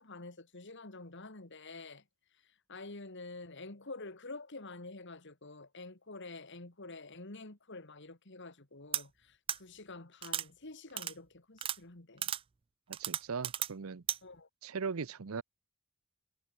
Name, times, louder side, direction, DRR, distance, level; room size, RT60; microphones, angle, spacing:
voice 1, 0.0-2.0 2.3-12.3 14.2-14.5, left 3 dB, 55° left, 2.3 m, -48 dB
sound 1, 8.9-9.0 9.5-9.6 10.2-10.5 11.0-11.1 11.6-11.8 12.2-12.4 12.9-13.7 14.1-14.2, right 11 dB, 25° right, 0.3 m, -34 dB
voice 2, 12.9-14.0 14.6-15.4, right 5 dB, 70° right, 0.6 m, -39 dB
head